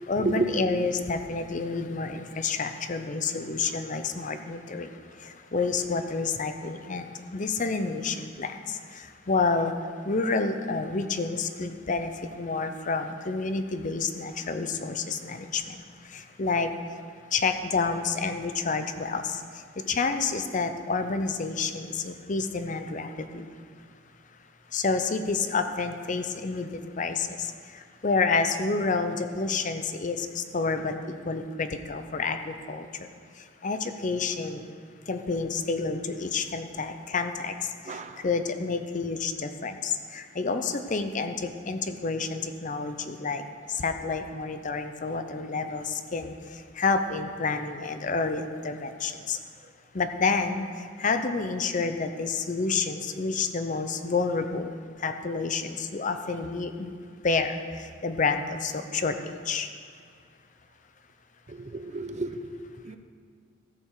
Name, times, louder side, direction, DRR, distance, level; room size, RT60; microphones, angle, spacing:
voice 1, 0.1-4.9 5.5-9.7 10.1-15.8 16.1-16.7 17.3-19.4 19.8-23.4 24.7-27.5 28.0-30.9 31.2-32.9 33.6-34.7 35.1-37.5 37.9-43.4 43.7-46.3 46.8-49.4 49.9-50.7 51.0-54.7 55.0-56.9 57.2-57.6 58.0-59.1 59.5-59.7, left 4 dB, 40° left, 8 dB, 0.6 m, -29 dB
voice 2, 37.9-38.2 61.5-62.4 62.8-63.0, right 3 dB, 40° right, 8 dB, 0.6 m, -30 dB
14.0 x 6.7 x 4.8 m, 2.1 s
head